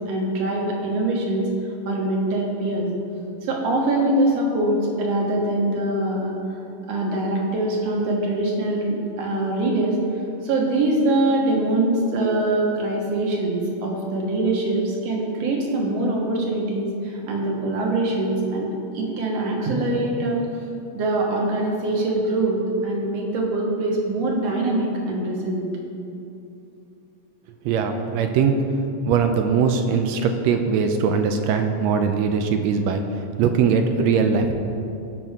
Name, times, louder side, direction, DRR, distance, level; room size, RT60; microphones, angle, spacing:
voice 1, 0.1-1.4 1.8-2.9 3.4-6.3 6.9-18.7 18.9-20.4 20.9-25.6, right 2 dB, 65° right, -1 dB, 2.4 m, -23 dB
voice 2, 27.6-28.6 29.1-34.5, right 6 dB, 80° right, 6 dB, 1.7 m, -21 dB
17.5 x 5.9 x 3.6 m, 2.7 s
omnidirectional pair, 3.3 m